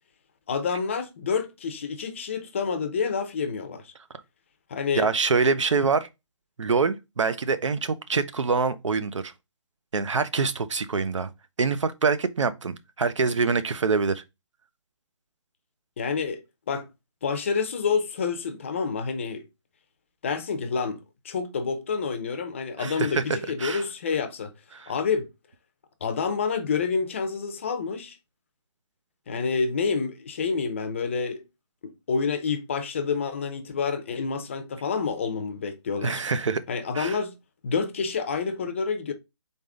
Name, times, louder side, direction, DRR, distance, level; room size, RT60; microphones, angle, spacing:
voice 1, 0.5-3.9 4.7-5.1 16.0-16.4 16.7-16.9 17.2-19.4 20.2-24.5 24.9-25.3 26.0-28.2 29.3-31.4 31.8-36.2 36.7-37.4 37.6-39.1, left 5 dB, 25° left, 0.5 m, -28 dB
voice 2, 5.0-6.1 6.6-9.3 9.9-11.3 11.6-14.2 22.8-23.2 23.6-23.8 24.8-24.9 36.0-36.6 37.0-37.2, right 4 dB, 85° right, 0.7 m, -25 dB
4.0 x 3.6 x 3.6 m
hypercardioid pair, 165°, 15 cm